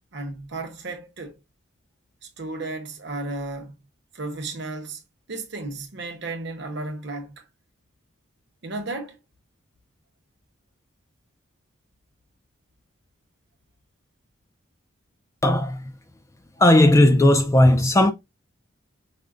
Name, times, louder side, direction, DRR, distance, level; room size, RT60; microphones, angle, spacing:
voice 1, 0.1-1.4 2.2-3.7 4.1-5.0 5.3-7.5 8.6-9.2, right 2 dB, 60° right, 0.9 m, -34 dB
voice 2, 15.4-15.8 16.6-18.1, left 1 dB, 15° left, 0.3 m, -16 dB
5.0 x 2.1 x 2.4 m
head